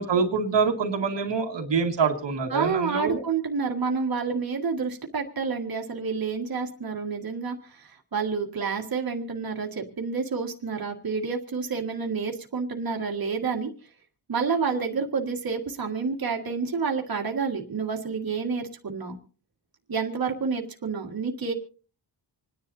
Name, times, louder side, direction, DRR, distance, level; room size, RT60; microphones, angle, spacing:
voice 1, 0.0-3.2, right 5 dB, 80° right, 2 dB, 2.0 m, -25 dB
voice 2, 2.5-13.7 14.3-19.2 19.9-21.5, right 5 dB, 55° right, 1 dB, 1.9 m, -29 dB
27.0 x 10.5 x 2.7 m, 0.38 s
wide cardioid pair, 125°, 42 cm